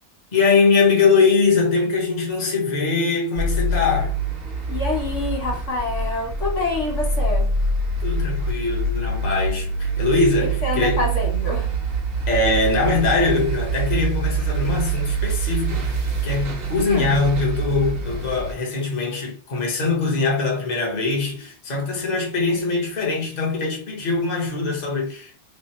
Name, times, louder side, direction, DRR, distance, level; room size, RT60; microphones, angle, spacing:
voice 1, 0.3-4.2 8.0-11.0 12.3-25.3, left 4 dB, 40° left, 1.1 m, -22 dB
sound 1, 3.4-18.5, right 3 dB, 60° right, 1.1 m, -25 dB
voice 2, 4.7-7.5 10.6-11.7 16.9-17.2, left 3 dB, 85° left, 1.4 m, -26 dB
3.4 x 2.1 x 4.1 m
omnidirectional pair, 1.2 m